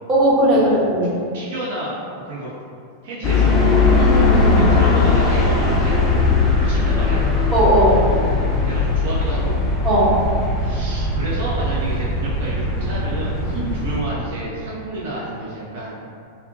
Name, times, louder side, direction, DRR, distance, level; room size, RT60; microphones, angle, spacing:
voice 1, 0.1-1.2 4.0-4.7 7.5-8.1 9.8-10.2 13.5-13.6, right 1 dB, 25° right, -7 dB, 0.8 m, -17 dB
voice 2, 1.3-2.5 3.0-3.8 4.3-6.0 6.5-7.3 8.6-9.6 10.6-16.0, right 1 dB, 55° right, -7 dB, 0.5 m, -30 dB
sound 1, 3.2-14.0, left 3 dB, 25° left, 0.5 m, -19 dB
3.6 x 2.1 x 2.6 m, 2.3 s
figure-of-eight pair, 90°, 0 cm